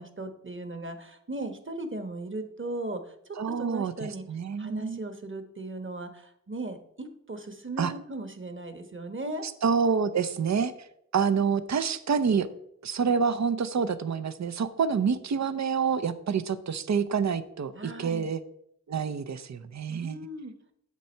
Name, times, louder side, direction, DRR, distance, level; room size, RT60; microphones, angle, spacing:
voice 1, 0.0-3.1 3.6-4.2 4.6-9.4 17.7-18.3 19.9-20.5, right 2 dB, 40° right, 8 dB, 1.3 m, -37 dB
voice 2, 3.4-5.0 7.8-7.9 9.4-10.7 11.1-12.5 12.8-18.4 18.9-20.2, right 6 dB, 60° right, 13 dB, 0.6 m, -27 dB
8.4 x 6.4 x 4.4 m, 0.74 s
cardioid pair, 40°, 31 cm